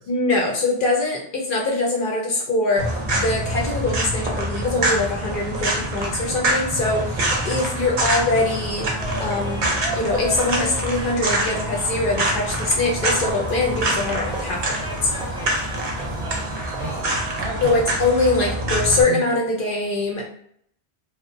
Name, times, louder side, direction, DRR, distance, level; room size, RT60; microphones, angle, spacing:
voice 1, 0.1-8.9 9.2-9.7 9.9-14.7 15.0-15.4 17.6-20.2, left 2 dB, 60° left, -1 dB, 0.6 m, -23 dB
sound 1, 2.8-19.0, right 1 dB, 55° right, 0.7 m, -25 dB
sound 2, 8.8-17.3, equal, 5° right, 0.3 m, -36 dB
voice 2, 16.0-17.9 18.4-18.6 19.1-19.4, right 4 dB, 80° right, 2 dB, 0.9 m, -34 dB
2.8 x 2.0 x 2.5 m, 0.66 s
omnidirectional pair, 1.1 m